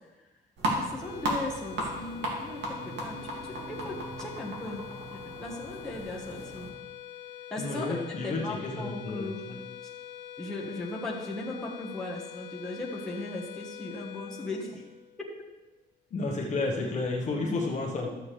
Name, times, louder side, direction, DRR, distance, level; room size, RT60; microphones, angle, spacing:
sound 1, 0.6-6.7, right 1 dB, 70° right, 2.4 m, -35 dB
voice 1, 0.7-4.8 5.1-6.7 7.5-9.5 10.4-14.9 17.4-17.7 18.0-18.1, left 2 dB, 5° left, -5 dB, 1.5 m, -37 dB
sound 2, 0.9-15.4, left 11 dB, 75° left, 0.6 m, -45 dB
voice 2, 7.6-9.6 16.1-18.1, left 3 dB, 40° left, -1 dB, 1.3 m, -31 dB
12.5 x 7.5 x 3.4 m, 1.1 s
cardioid pair, 165°, 19 cm